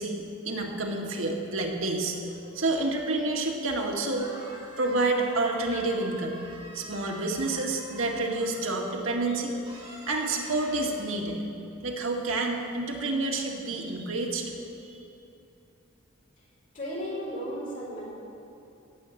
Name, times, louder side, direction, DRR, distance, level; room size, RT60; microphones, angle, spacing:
voice 1, 0.0-4.5 4.8-6.4 6.7-11.4 11.8-14.6 14.8-15.0, right 2 dB, 70° right, 0 dB, 1.9 m, -29 dB
sound 1, 4.1-8.9 9.6-10.9, equal, 25° right, 4.0 m, -46 dB
voice 2, 16.7-18.1, equal, 40° left, -5 dB, 4.6 m, -34 dB
17.0 x 7.5 x 9.4 m, 2.9 s
head